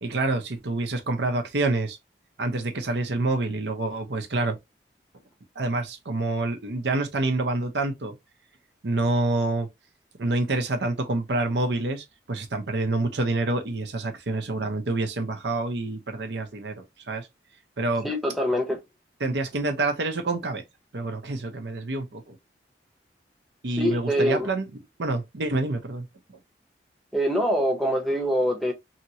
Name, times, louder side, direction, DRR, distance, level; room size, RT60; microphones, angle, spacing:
voice 1, 0.0-2.0 2.4-4.6 5.6-8.1 8.8-9.7 10.2-17.3 17.8-18.1 19.2-20.6 20.9-22.4 23.6-24.7 25.0-26.1, right 2 dB, 80° right, 0.8 m, -27 dB
voice 2, 18.0-18.8 23.8-24.5 27.1-28.7, equal, ahead, 0.7 m, -24 dB
2.9 x 2.9 x 2.7 m
head